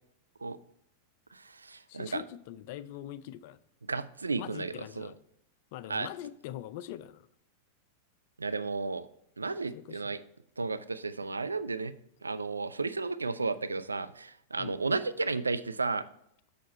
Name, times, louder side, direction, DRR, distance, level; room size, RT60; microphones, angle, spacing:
voice 1, 1.3-2.2 3.9-5.1 5.9-6.1 8.4-9.1 9.4-10.2 10.6-11.9 12.2-16.0, right 3 dB, 90° right, 0.4 m, -33 dB
voice 2, 1.9-3.6 4.4-5.1 5.7-7.3 9.7-10.2 14.6-14.8, left 12 dB, 55° left, 0.4 m, -43 dB
6.8 x 6.4 x 4.2 m
figure-of-eight pair, 95°, 0 cm